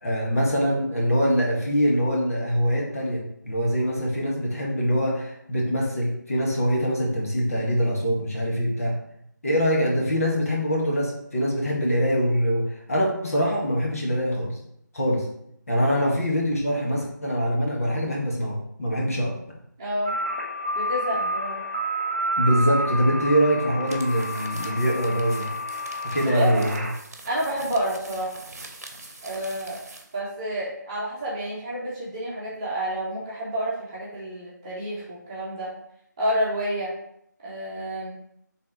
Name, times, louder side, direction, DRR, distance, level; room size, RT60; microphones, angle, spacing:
voice 1, 0.0-8.9 9.4-14.6 14.9-15.3 15.7-19.3 22.4-25.5 26.0-26.7, equal, 45° left, -3 dB, 1.7 m, -24 dB
voice 2, 19.8-20.2 20.7-21.6 26.2-26.6 27.3-28.4 29.2-29.8 30.1-35.7 36.2-36.9 37.4-38.1, right 1 dB, 15° right, -8 dB, 1.2 m, -29 dB
sound 1, 20.1-26.9, equal, 35° right, 1.3 m, -30 dB
sound 2, 23.8-30.2, right 2 dB, 50° right, 1.0 m, -44 dB
5.6 x 3.6 x 4.7 m, 0.74 s
figure-of-eight pair, 160°, 10 cm